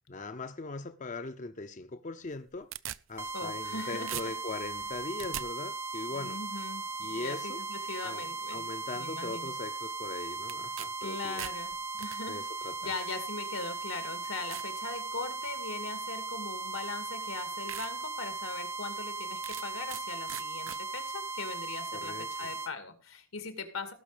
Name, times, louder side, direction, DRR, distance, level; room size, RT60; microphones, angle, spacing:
voice 1, 0.1-2.7 3.1-6.4 7.0-7.6 8.0-11.5 12.3-12.9 21.9-22.5, left 3 dB, 35° left, 0.6 m, -40 dB
sound 1, 2.2-3.8 4.1-5.5 10.5-10.9 11.2-12.2 13.1-13.2 13.8-13.9 14.5-14.7 15.2-15.6 16.7-16.8 17.3-17.4 17.7-17.9 18.3-18.4 19.4-20.0 20.3-20.8, right 12 dB, 70° right, 0.5 m, -41 dB
sound 2, 3.2-22.7, right 3 dB, 10° right, 0.5 m, -38 dB
voice 2, 3.3-4.3 6.1-8.7 8.9-9.5 11.0-11.7 12.0-12.4 12.8-23.9, left 4 dB, 90° left, 2.4 m, -40 dB
18.0 x 6.2 x 5.0 m
head